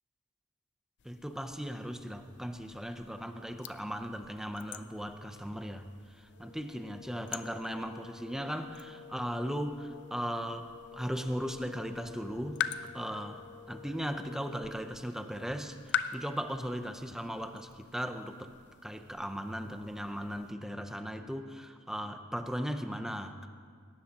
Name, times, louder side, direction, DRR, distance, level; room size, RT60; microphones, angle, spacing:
sound 1, 1.0-20.5, left 9 dB, 55° left, 0.5 m, -45 dB
voice 1, 1.0-12.6 12.9-18.5 18.8-23.5, equal, ahead, 7 dB, 0.6 m, -37 dB
sound 2, 6.2-15.0, left 6 dB, 80° left, 3.3 m, -52 dB
19.0 x 17.5 x 3.0 m, 2.1 s
head